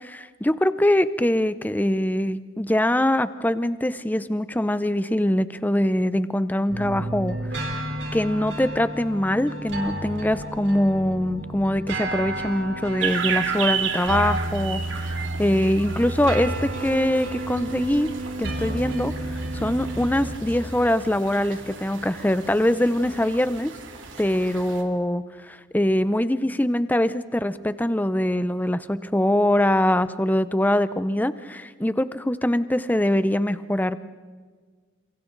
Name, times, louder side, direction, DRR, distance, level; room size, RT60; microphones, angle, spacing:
voice 1, 0.0-7.8 8.1-18.1 18.4-23.7 24.2-34.1, left 1 dB, 10° left, 13 dB, 0.6 m, -23 dB
sound 1, 6.7-20.4, right 1 dB, 60° right, 3.9 m, -31 dB
sound 2, 13.0-24.8, right 7 dB, 85° right, 2.6 m, -34 dB
29.5 x 28.0 x 4.0 m, 1.5 s
head